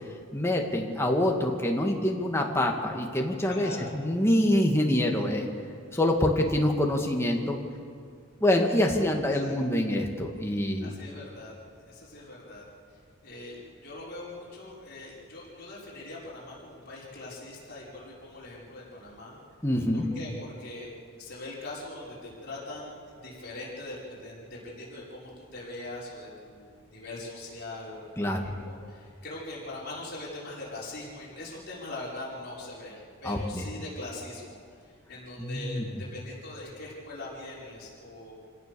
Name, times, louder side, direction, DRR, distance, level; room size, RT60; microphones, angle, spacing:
voice 1, 0.3-5.5 5.9-7.6 8.4-10.9 19.6-20.1 28.2-28.5 33.3-33.6 35.4-35.9, left 1 dB, 10° left, 1 dB, 1.9 m, -26 dB
voice 2, 3.5-3.9 9.3-9.5 10.8-11.5 11.9-12.6 13.2-19.4 19.9-20.9 21.2-23.0 23.2-38.4, left 2 dB, 50° left, -6 dB, 5.4 m, -41 dB
27.5 x 17.0 x 6.9 m, 2.2 s
head